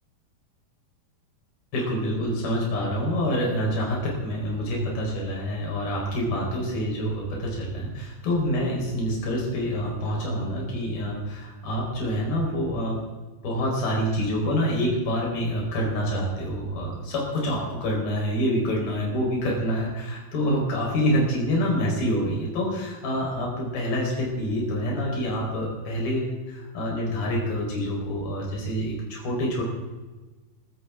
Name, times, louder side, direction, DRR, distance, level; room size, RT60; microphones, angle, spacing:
voice 1, 1.7-13.0 13.4-29.6, equal, 80° left, -2 dB, 6.2 m, -27 dB
25.5 x 14.5 x 3.6 m, 1.2 s
omnidirectional pair, 4.2 m